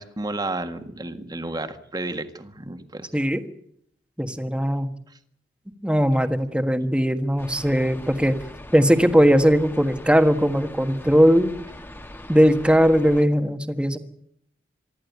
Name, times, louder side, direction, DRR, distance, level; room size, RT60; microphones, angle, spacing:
voice 1, 0.0-3.3, right 2 dB, 25° right, 8 dB, 1.7 m, -32 dB
voice 2, 4.2-4.9 5.8-8.3 8.7-11.5 12.3-14.0, equal, 5° right, 8 dB, 1.4 m, -19 dB
sound 1, 7.4-13.2, left 1 dB, 15° left, 1.4 m, -41 dB
24.0 x 14.0 x 9.5 m, 0.70 s
head